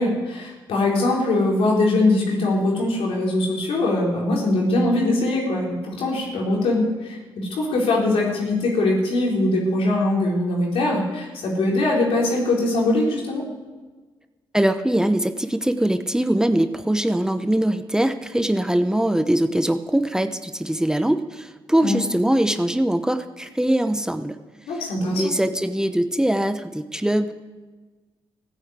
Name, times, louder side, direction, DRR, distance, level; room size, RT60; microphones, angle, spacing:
voice 1, 0.0-13.4 21.8-22.0 24.7-25.3, left 2 dB, 85° left, -2 dB, 4.3 m, -22 dB
voice 2, 14.5-24.4 25.1-27.3, right 1 dB, 5° right, 9 dB, 0.9 m, -22 dB
15.0 x 9.9 x 8.3 m, 1.3 s
cardioid pair, 70°, 10 cm